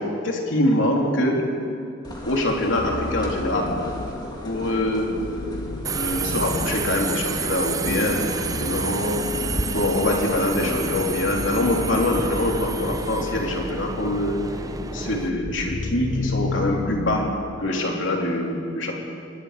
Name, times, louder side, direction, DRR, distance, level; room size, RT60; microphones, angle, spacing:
voice 1, 0.0-1.4 2.2-3.8 4.4-5.1 5.9-8.3 8.6-9.2 9.7-14.4 14.9-17.3 17.6-18.9, left 1 dB, 75° left, 0 dB, 3.4 m, -24 dB
sound 1, 2.0-12.1, equal, 20° left, 2.6 m, -39 dB
sound 2, 2.7-18.3, left 2 dB, 50° left, 0.7 m, -33 dB
Subway metro underground, 5.8-15.3, right 4 dB, 20° right, 0.5 m, -30 dB
25.0 x 20.5 x 5.0 m, 2.6 s
head